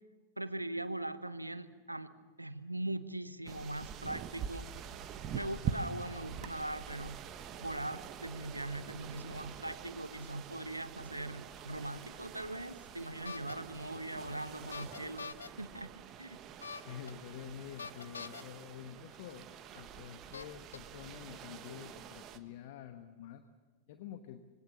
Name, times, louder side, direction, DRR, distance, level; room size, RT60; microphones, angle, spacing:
voice 1, 0.4-2.1 2.4-4.7 5.3-7.2 7.6-15.9 16.2-16.4, right 1 dB, 85° right, 13 dB, 1.1 m, -41 dB
sound 1, 3.5-22.4, right 8 dB, 35° right, 1.4 m, -45 dB
Small Squeeze Bulb Horn, 13.3-13.5 14.7-15.5 16.6-17.1 17.8-18.4 19.5-19.6 20.3-20.8, left 5 dB, 75° left, 0.7 m, -44 dB
voice 2, 16.8-19.5 19.7-23.4 23.9-24.4, left 9 dB, 50° left, 10 dB, 1.2 m, -48 dB
26.0 x 22.5 x 7.0 m, 1.4 s
figure-of-eight pair, 90°, 0 cm